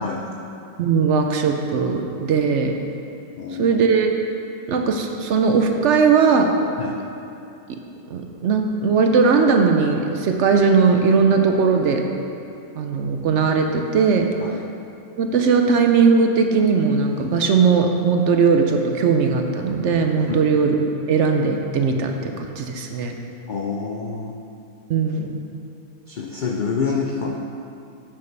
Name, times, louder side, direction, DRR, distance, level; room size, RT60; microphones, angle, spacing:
voice 1, 0.8-2.7 3.6-4.1 4.7-6.5 8.1-12.0 12.8-14.3 15.2-20.8 21.1-23.1 24.9-25.3, right 5 dB, 65° right, 4 dB, 0.8 m, -18 dB
voice 2, 3.4-3.8 6.8-7.0 14.4-14.6 20.3-20.5 23.5-24.4 26.1-27.3, left 5 dB, 75° left, 1 dB, 0.4 m, -27 dB
9.2 x 7.5 x 3.3 m, 2.7 s
omnidirectional pair, 1.5 m